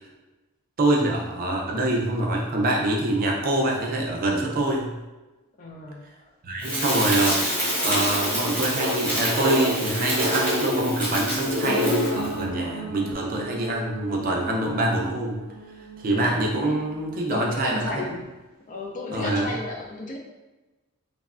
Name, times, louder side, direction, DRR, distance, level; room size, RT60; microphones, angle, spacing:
voice 1, 0.8-4.9 6.4-15.4 16.0-18.0 19.1-19.5, right 1 dB, 40° right, -1 dB, 0.4 m, -25 dB
voice 2, 5.6-6.3 17.3-18.4 18.7-20.2, left 2 dB, 35° left, -1 dB, 0.4 m, -33 dB
Crackle, 6.6-12.3, equal, 5° left, 1.0 m, -25 dB
sound 1, 11.6-17.5, right 1 dB, 85° left, 0.9 m, -37 dB
3.3 x 2.1 x 2.4 m, 1.1 s
head